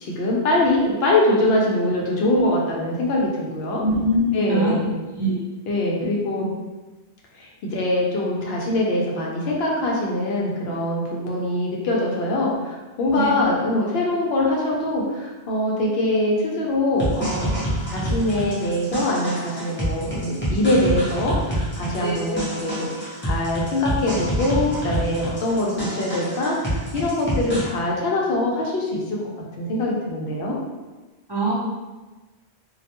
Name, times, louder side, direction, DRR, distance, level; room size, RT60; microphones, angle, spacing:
voice 1, 0.0-3.8 4.3-4.9 5.7-6.5 7.4-17.6 17.9-29.2 29.6-30.6, left 1 dB, 70° left, -3 dB, 0.8 m, -23 dB
voice 2, 3.8-4.7 5.1-5.3 13.1-13.3 22.0-22.2 31.3-31.5, right 1 dB, 30° right, -11 dB, 0.6 m, -22 dB
sound 1, 17.0-27.6, right 1 dB, 15° left, 0.5 m, -27 dB
2.3 x 2.1 x 2.8 m, 1.2 s
omnidirectional pair, 1.1 m